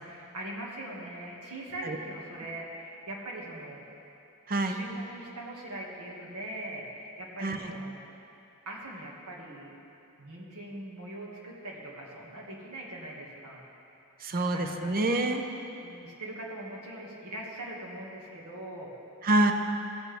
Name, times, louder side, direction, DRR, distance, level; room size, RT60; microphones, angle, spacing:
voice 1, 0.0-3.9 4.6-8.0 8.7-9.7 10.2-13.6 14.3-14.9 15.8-18.9, right 1 dB, 75° right, -3 dB, 1.9 m, -41 dB
voice 2, 4.5-4.8 7.4-7.7 14.2-15.4 19.2-19.5, right 2 dB, 40° right, 5 dB, 0.6 m, -26 dB
16.0 x 8.2 x 3.5 m, 2.8 s
head